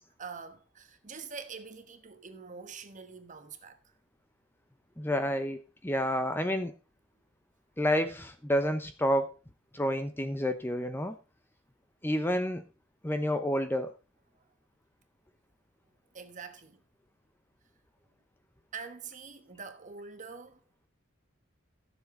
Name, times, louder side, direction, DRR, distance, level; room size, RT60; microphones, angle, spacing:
voice 1, 0.2-3.8 16.1-16.8 18.7-20.6, right 5 dB, 40° right, 1.2 m, -45 dB
voice 2, 5.0-6.7 7.8-9.3 9.7-11.2 12.0-12.6 13.0-13.9, equal, 10° left, 0.8 m, -29 dB
14.0 x 7.3 x 3.8 m
head